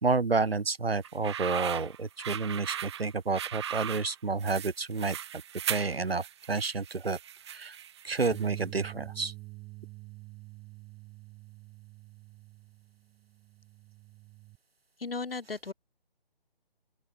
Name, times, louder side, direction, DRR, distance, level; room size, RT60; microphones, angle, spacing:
voice 1, 0.0-5.2 5.7-7.2 7.5-7.7 8.0-9.3, right 4 dB, 75° right, 2.2 m, -30 dB
sound 1, 1.0-8.6, right 10 dB, 25° right, 1.6 m, -38 dB
Bass guitar, 8.3-14.6, right 23 dB, ahead, 0.5 m, -47 dB
voice 2, 15.0-15.7, left 4 dB, 65° left, 4.0 m, -35 dB
open air
figure-of-eight pair, 155°, 30 cm